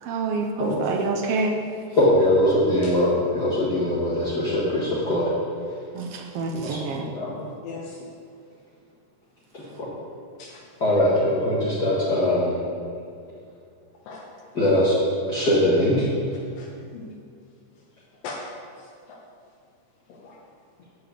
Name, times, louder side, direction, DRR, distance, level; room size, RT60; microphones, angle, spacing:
voice 1, 0.0-1.6 5.9-7.1, right 4 dB, 90° right, 1 dB, 1.4 m, -27 dB
voice 2, 2.0-5.3 6.5-7.3 9.8-9.9 10.8-12.6 14.5-15.0 15.3-16.1, left 1 dB, 35° left, -9 dB, 1.9 m, -21 dB
voice 3, 7.3-8.0 10.4-10.6 14.1-14.2 16.6-17.1 18.2-18.4 19.1-19.2 20.1-20.4, left 4 dB, 65° left, -3 dB, 1.8 m, -39 dB
11.0 x 5.0 x 8.0 m, 2.3 s
omnidirectional pair, 3.8 m